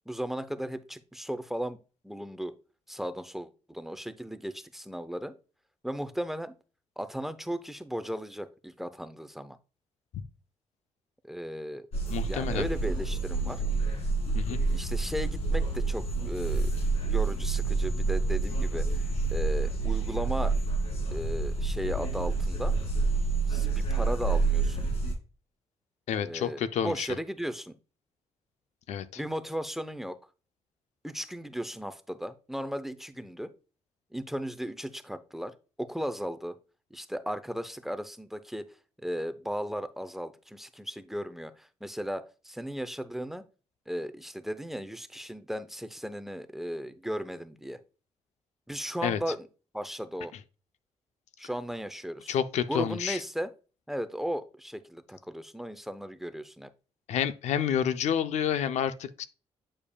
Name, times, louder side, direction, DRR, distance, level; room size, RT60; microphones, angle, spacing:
voice 1, 0.1-1.8 2.0-2.5 2.9-5.3 5.8-6.6 7.0-9.6 11.2-11.9 12.2-13.6 14.7-16.7 17.0-19.0 19.3-20.5 21.1-22.7 23.5-24.9 26.2-27.7 29.2-30.2 31.0-33.5 34.1-36.5 36.9-38.7 39.0-43.4 43.9-47.8 48.7-49.5 49.7-50.3 51.4-52.3 52.7-53.5 53.9-56.7, equal, 5° right, 0.5 m, -36 dB
sound 1, 11.9-25.1, right 3 dB, 65° left, 2.3 m, -28 dB
voice 2, 12.1-12.7 14.3-14.6 26.1-27.1 28.9-29.1 49.0-49.2 52.3-53.2 57.1-59.2, left 9 dB, 85° left, 0.5 m, -29 dB
8.6 x 5.0 x 2.2 m
cardioid pair, 115°, 11 cm